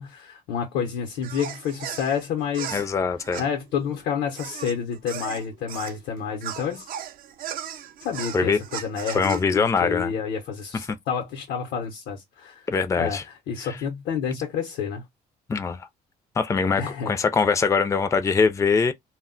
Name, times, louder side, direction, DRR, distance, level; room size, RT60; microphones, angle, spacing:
voice 1, 0.0-2.8 3.4-6.9 8.0-12.7 13.0-15.0 16.8-17.1, left 7 dB, 80° left, 0.7 m, -29 dB
sound 1, 1.2-6.0 6.4-9.4, right 10 dB, 60° right, 0.4 m, -36 dB
voice 2, 2.7-3.4 8.3-8.6 9.1-10.2 10.9-11.0 12.7-13.2 13.6-13.8 15.5-15.9 16.4-18.9, left 5 dB, 20° left, 0.4 m, -23 dB
2.2 x 2.0 x 3.7 m
cardioid pair, 110°, 17 cm